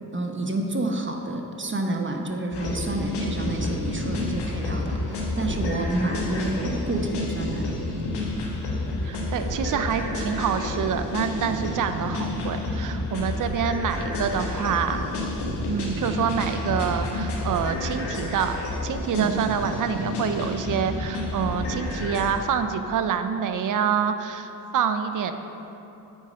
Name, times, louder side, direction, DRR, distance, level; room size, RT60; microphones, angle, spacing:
voice 1, 0.1-7.7 19.2-19.3, right 2 dB, 30° right, 3 dB, 1.1 m, -29 dB
sound 1, 2.5-22.3, left 2 dB, 85° left, 1.5 m, -30 dB
voice 2, 9.0-15.0 15.7-18.5 18.8-25.3, right 7 dB, 50° right, 9 dB, 0.6 m, -27 dB
8.1 x 5.0 x 5.4 m, 2.9 s
supercardioid pair, 45°, 39 cm